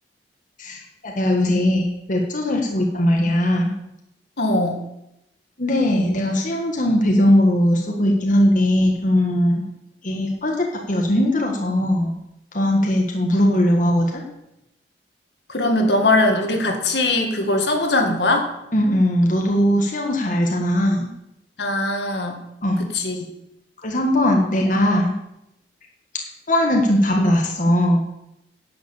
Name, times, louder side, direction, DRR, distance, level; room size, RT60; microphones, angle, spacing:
voice 1, 0.6-3.7 5.6-9.6 10.0-12.1 12.5-14.2 18.7-21.1 22.6-22.8 23.8-25.1 26.5-28.0, left 1 dB, 50° left, 0 dB, 1.6 m, -19 dB
voice 2, 4.4-4.8 15.5-18.5 21.6-22.4 22.8-23.2, left 2 dB, 70° left, 3 dB, 2.0 m, -20 dB
10.5 x 7.8 x 7.1 m, 0.84 s
head